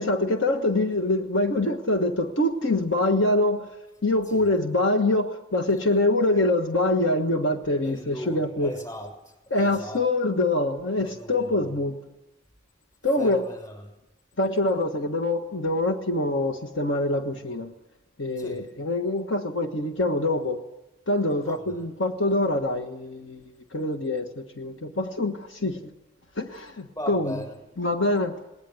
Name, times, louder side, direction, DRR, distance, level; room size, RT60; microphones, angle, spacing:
voice 1, 0.0-3.7 4.0-8.7 9.5-12.0 13.0-13.4 14.4-17.7 18.2-20.7 21.1-23.4 23.7-25.9 26.4-27.4 27.8-28.4, left 2 dB, 70° left, 5 dB, 1.4 m, -25 dB
voice 2, 7.8-10.0 11.0-11.8 13.2-13.9 18.4-18.6 21.4-21.9 27.0-27.6, equal, 20° left, 3 dB, 6.1 m, -38 dB
19.5 x 19.5 x 9.4 m, 0.97 s
head